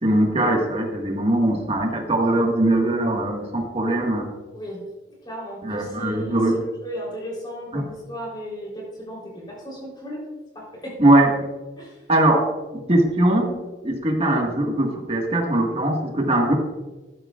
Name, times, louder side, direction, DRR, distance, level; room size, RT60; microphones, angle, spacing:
voice 1, 0.0-4.3 5.6-6.6 7.7-7.8 11.0-11.4 12.1-12.5 12.9-13.5 13.8-16.5, right 1 dB, 35° right, 1 dB, 1.6 m, -20 dB
voice 2, 4.5-4.9 5.2-10.2 10.5-11.0 11.8-12.0, equal, 25° left, -3 dB, 3.7 m, -35 dB
12.0 x 11.5 x 2.4 m, 1.2 s
head